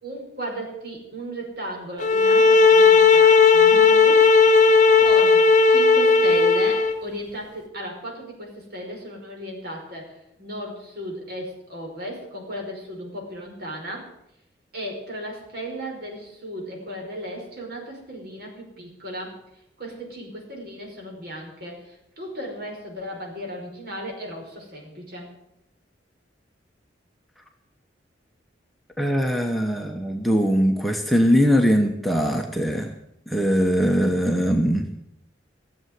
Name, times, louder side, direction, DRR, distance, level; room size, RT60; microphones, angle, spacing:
voice 1, 0.0-4.3 5.0-5.4 5.7-14.1 14.7-19.4 19.8-25.3, equal, 55° right, 0 dB, 5.4 m, -35 dB
sound 1, 2.0-7.0, left 4 dB, 40° left, 0.9 m, -15 dB
voice 2, 29.0-32.9 33.3-34.9, equal, ahead, 2 dB, 1.0 m, -21 dB
16.0 x 7.9 x 9.4 m, 0.80 s
head